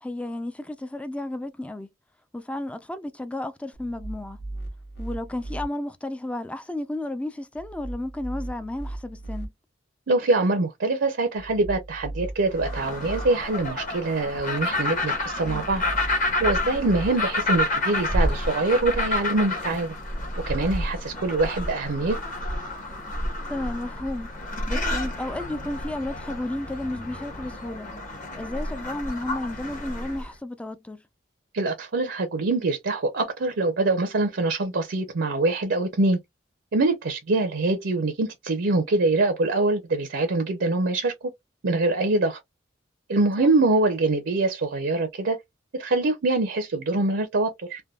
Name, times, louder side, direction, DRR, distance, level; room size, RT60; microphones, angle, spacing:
voice 1, 0.0-1.9 2.3-4.4 5.0-9.5 23.5-24.3 24.7-27.9 28.4-31.0 43.4-43.5, left 1 dB, 5° left, 0.3 m, -32 dB
sound 1, 3.7-5.7 7.5-9.5 11.3-13.3 15.2-17.1, right 2 dB, 60° left, 0.7 m, -37 dB
voice 2, 10.1-15.8 16.4-19.9 20.5-22.2 31.5-36.2 36.7-41.1 41.6-42.4 43.1-45.4 45.7-47.8, right 2 dB, 65° right, 0.6 m, -24 dB
sound 2, 12.5-30.3, left 1 dB, 45° left, 1.2 m, -29 dB
3.4 x 2.2 x 2.3 m
head